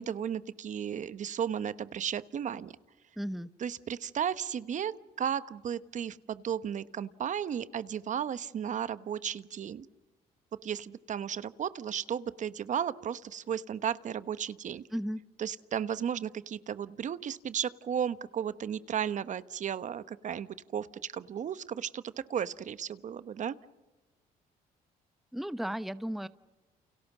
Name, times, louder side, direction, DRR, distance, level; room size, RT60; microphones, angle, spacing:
voice 1, 0.0-2.7 3.6-9.9 10.6-14.8 15.4-23.5, right 8 dB, 50° right, 15 dB, 1.1 m, -34 dB
voice 2, 3.2-3.5 14.9-15.2 25.3-26.3, equal, ahead, 14 dB, 0.9 m, -34 dB
29.5 x 29.0 x 6.2 m, 1.1 s
cardioid pair, 95°, 16 cm